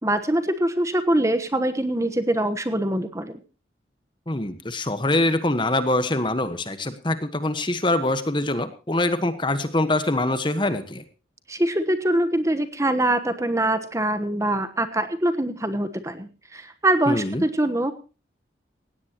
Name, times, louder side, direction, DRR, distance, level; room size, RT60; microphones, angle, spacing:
voice 1, 0.0-3.4 11.5-17.9, right 1 dB, 15° right, 10 dB, 1.1 m, -23 dB
voice 2, 4.3-11.0 17.1-17.4, left 2 dB, 25° left, 11 dB, 1.3 m, -24 dB
18.0 x 17.0 x 3.0 m, 0.33 s
head